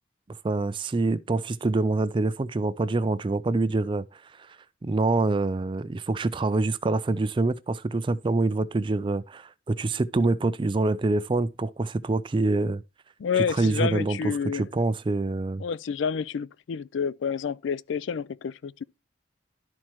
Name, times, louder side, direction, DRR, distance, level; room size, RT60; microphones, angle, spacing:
voice 1, 0.4-4.0 4.8-12.8 13.5-15.6, right 2 dB, 25° right, 0.4 m, -26 dB
voice 2, 13.2-14.7 15.6-18.8, left 6 dB, 75° left, 0.4 m, -29 dB
12.0 x 4.3 x 3.0 m
head